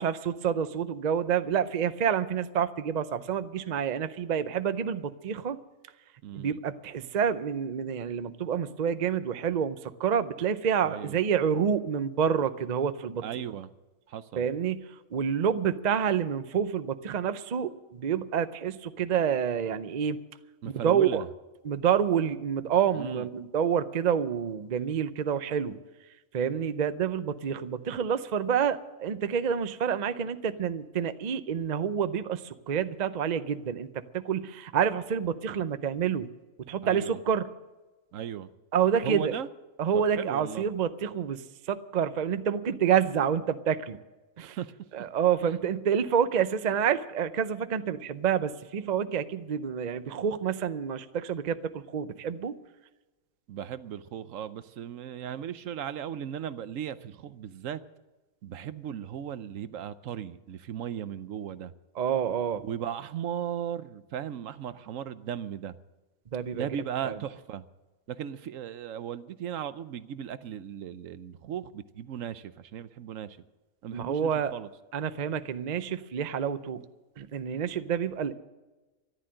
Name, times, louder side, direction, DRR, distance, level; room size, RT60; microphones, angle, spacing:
voice 1, 0.0-5.6 6.3-13.4 14.4-20.2 20.7-21.2 21.6-25.8 26.3-36.3 36.7-37.5 38.7-39.3 39.8-44.0 44.4-44.6 44.9-52.6 62.0-62.6 66.3-66.7 67.0-67.2 73.9-74.5 74.9-76.8 77.2-78.3, right 8 dB, 45° right, 12 dB, 0.5 m, -28 dB
voice 2, 6.2-6.6 10.8-11.2 13.2-13.7 14.1-14.5 20.6-21.3 22.9-23.3 36.8-37.2 38.1-38.5 39.0-39.5 39.9-40.6 44.4-44.7 53.5-57.8 58.4-61.7 62.6-65.7 66.5-67.6 68.1-73.4 73.8-74.7, right 9 dB, 70° right, 14 dB, 1.0 m, -37 dB
14.0 x 11.5 x 7.7 m, 1.1 s
omnidirectional pair, 1.5 m